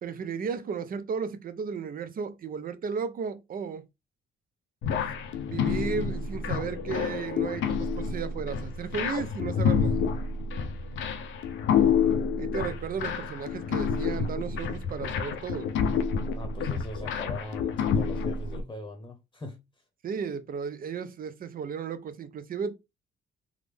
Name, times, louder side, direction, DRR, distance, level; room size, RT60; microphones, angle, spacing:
voice 1, 0.0-3.8 5.4-10.0 12.4-15.7 20.0-22.7, right 6 dB, 45° right, 0.5 m, -34 dB
sound 1, 4.8-18.6, left 6 dB, 75° left, 0.5 m, -28 dB
voice 2, 16.3-19.6, left 1 dB, 20° left, 0.9 m, -41 dB
3.5 x 2.0 x 3.3 m
cardioid pair, 90°, 20 cm